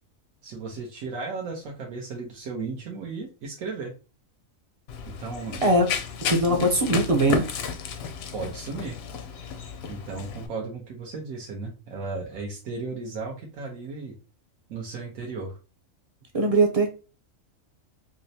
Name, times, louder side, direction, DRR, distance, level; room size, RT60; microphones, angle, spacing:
voice 1, 0.4-3.9 5.0-5.6 6.5-6.6 8.3-9.0 9.9-14.1 14.7-15.6, right 4 dB, 90° right, -1 dB, 1.2 m, -35 dB
Run, 4.9-10.5, left 6 dB, 65° left, 0.7 m, -33 dB
voice 2, 6.3-7.5 16.3-16.9, right 1 dB, 45° right, 2 dB, 0.5 m, -21 dB
4.9 x 2.1 x 2.7 m, 0.32 s
omnidirectional pair, 1.4 m